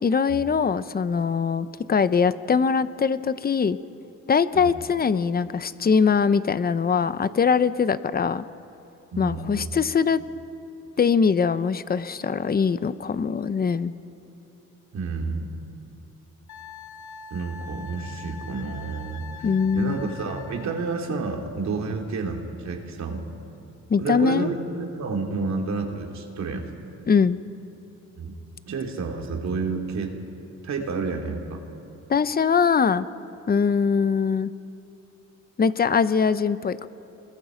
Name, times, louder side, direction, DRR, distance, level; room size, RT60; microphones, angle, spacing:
voice 1, 0.0-3.8 4.3-8.4 9.2-10.2 11.0-13.9 19.4-20.0 23.9-24.5 27.1-27.4 32.1-33.1 33.5-34.5 35.6-36.9, left 6 dB, 30° left, 14 dB, 0.8 m, -22 dB
voice 2, 9.1-9.7 14.9-15.6 17.3-19.5 19.7-23.2 24.0-26.7 28.2-28.3 28.7-30.1 30.6-31.6, right 4 dB, 65° right, 2 dB, 3.0 m, -30 dB
Wind instrument woodwind instrument, 16.5-20.9, left 6 dB, 70° left, 1.4 m, -43 dB
28.0 x 21.5 x 5.2 m, 2.9 s
cardioid pair, 90°, 30 cm